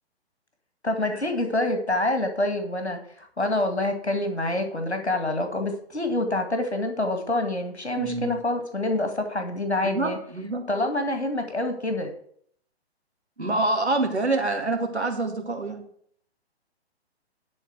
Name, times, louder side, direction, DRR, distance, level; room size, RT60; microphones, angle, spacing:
voice 1, 0.8-10.2 10.7-12.1, left 1 dB, 90° left, 6 dB, 2.0 m, -26 dB
voice 2, 8.0-8.4 9.8-10.7 13.4-15.8, right 2 dB, 90° right, 3 dB, 2.4 m, -26 dB
12.0 x 4.3 x 8.0 m, 0.62 s
figure-of-eight pair, 130°, 32 cm